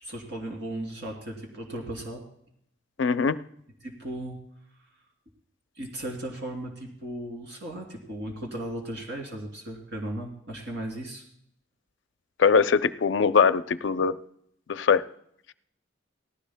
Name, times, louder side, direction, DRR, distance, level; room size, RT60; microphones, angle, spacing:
voice 1, 0.0-2.2 3.8-4.4 5.8-11.2, right 1 dB, 65° right, 0 dB, 2.9 m, -36 dB
voice 2, 3.0-3.4 12.4-14.2 14.7-15.0, left 5 dB, 65° left, 13 dB, 0.5 m, -21 dB
18.5 x 15.5 x 2.2 m, 0.71 s
head